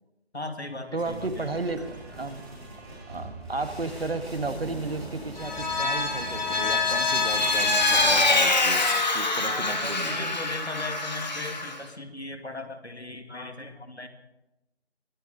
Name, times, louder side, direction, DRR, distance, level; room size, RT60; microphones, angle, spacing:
voice 1, 0.3-1.5 9.5-14.1, left 2 dB, 90° left, 6 dB, 2.3 m, -38 dB
sound 1, 0.8-5.5, right 2 dB, 25° right, 3.5 m, -46 dB
voice 2, 0.9-2.4 3.1-10.4, right 3 dB, 65° right, 10 dB, 1.5 m, -34 dB
sound 2, 1.0-8.2, right 1 dB, ahead, 3.0 m, -42 dB
Vehicle, 5.4-11.8, left 3 dB, 40° left, 1.8 m, -25 dB
23.0 x 8.5 x 5.3 m, 0.95 s
figure-of-eight pair, 160°, 32 cm